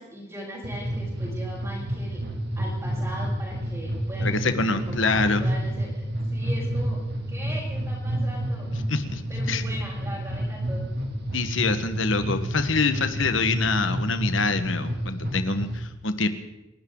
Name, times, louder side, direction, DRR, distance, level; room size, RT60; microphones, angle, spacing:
voice 1, 0.0-2.2 2.6-8.7 9.3-10.8, equal, 15° right, -10 dB, 5.4 m, -39 dB
sound 1, 0.6-15.8, right 1 dB, 55° right, 2.3 m, -29 dB
voice 2, 4.2-5.4 8.9-9.2 9.5-9.6 11.3-16.3, left 3 dB, 70° left, 9 dB, 1.4 m, -25 dB
29.5 x 12.0 x 3.9 m, 0.96 s
head